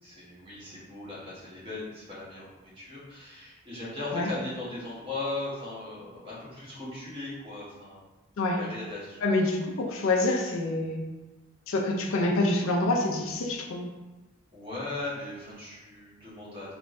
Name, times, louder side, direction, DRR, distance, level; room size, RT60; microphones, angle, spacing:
voice 1, 0.0-8.0 8.5-9.2 14.5-16.7, left 2 dB, 25° right, -8 dB, 1.2 m, -38 dB
voice 2, 9.2-11.0 11.7-13.9, left 2 dB, 70° left, 1 dB, 0.5 m, -26 dB
3.3 x 3.0 x 2.5 m, 1.2 s
head